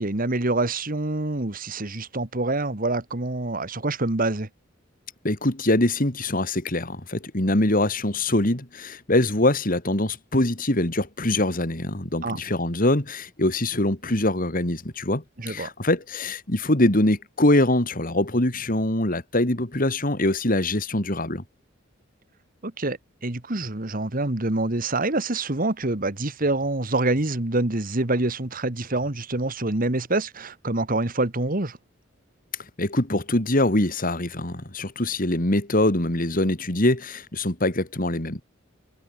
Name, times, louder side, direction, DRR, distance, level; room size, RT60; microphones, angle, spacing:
voice 1, 0.0-4.5 12.2-12.4 15.4-15.7 22.6-31.8, right 2 dB, 45° right, 1.8 m, -26 dB
voice 2, 5.2-21.4 32.8-38.4, left 1 dB, 45° left, 3.0 m, -23 dB
head